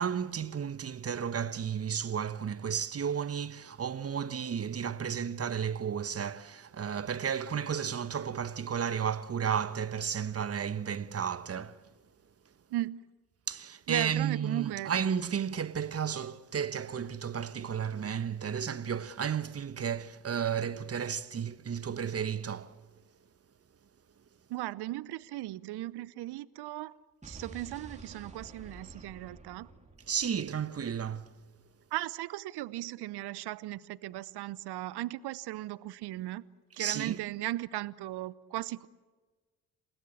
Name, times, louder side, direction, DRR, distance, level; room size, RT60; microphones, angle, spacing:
voice 1, 0.0-11.8 13.5-22.8 30.1-31.3 36.8-37.2, right 7 dB, 30° right, 1.1 m, -33 dB
voice 2, 12.7-13.1 13.9-14.9 24.5-27.0 27.2-29.7 31.9-36.4 36.8-38.9, right 16 dB, 55° right, 0.9 m, -37 dB
Explosion, 27.2-31.3, right 2 dB, 15° right, 2.9 m, -50 dB
29.0 x 17.0 x 8.7 m
hypercardioid pair, 50°, 46 cm